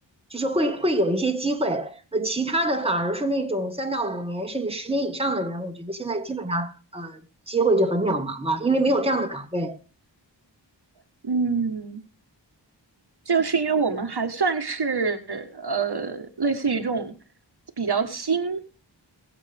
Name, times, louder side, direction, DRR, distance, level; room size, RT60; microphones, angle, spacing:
voice 1, 0.3-9.8, right 1 dB, 15° right, 1.6 m, -25 dB
voice 2, 11.2-12.0 13.2-17.1 17.8-18.6, right 5 dB, 55° right, 1.5 m, -25 dB
22.0 x 7.5 x 3.5 m
wide cardioid pair, 60°, 45 cm